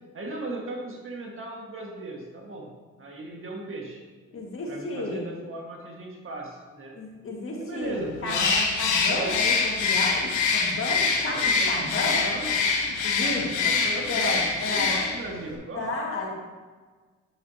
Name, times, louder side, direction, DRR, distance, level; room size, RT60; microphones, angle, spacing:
voice 1, 0.1-2.7 3.0-4.0 4.7-7.0 7.6-8.7 9.1-9.4 11.2-12.5 13.2-15.9, right 2 dB, 45° right, -1 dB, 1.7 m, -37 dB
voice 2, 4.3-5.3 6.9-8.5 8.8-12.6 12.8-13.7 14.1-15.0 15.8-16.4, left 2 dB, 45° left, -2 dB, 1.9 m, -32 dB
Bird, 8.3-15.3, left 4 dB, 80° left, 1.1 m, -25 dB
8.8 x 6.2 x 2.8 m, 1.4 s
cardioid pair, 90°, 30 cm